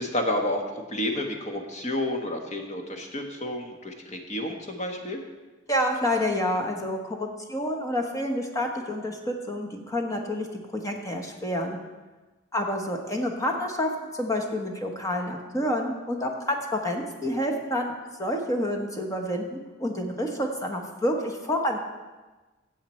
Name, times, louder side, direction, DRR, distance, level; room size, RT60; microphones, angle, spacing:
voice 1, 0.0-5.2, left 1 dB, 35° left, 3 dB, 1.3 m, -30 dB
voice 2, 5.7-10.5 10.7-11.8 12.5-17.9 18.2-21.8, left 1 dB, 15° left, 2 dB, 1.2 m, -28 dB
15.0 x 7.8 x 4.4 m, 1.2 s
head